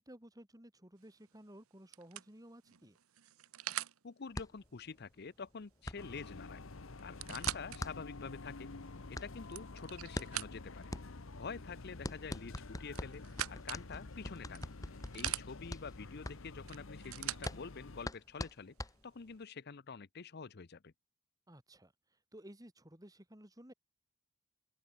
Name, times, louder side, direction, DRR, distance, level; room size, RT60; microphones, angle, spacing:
voice 1, 0.0-3.0 21.5-21.9 22.3-23.7, right 1 dB, 15° right, 3.2 m, -55 dB
sound 1, 1.0-1.3 1.9-4.0 6.0-6.1 6.4-6.5 7.0-7.8 8.4-8.5 9.2-10.8 12.5-13.8 14.5-15.5 16.7-17.5 18.5-18.6, right 13 dB, 90° right, 1.1 m, -42 dB
voice 2, 4.0-6.6 7.0-8.7 9.1-10.9 11.4-14.7 15.1-18.8 19.0-20.9, left 5 dB, 50° left, 0.7 m, -47 dB
sound 2, 4.3-19.4, left 1 dB, 15° left, 1.3 m, -45 dB
sound 3, 6.0-18.1, left 3 dB, 65° left, 1.1 m, -49 dB
open air
head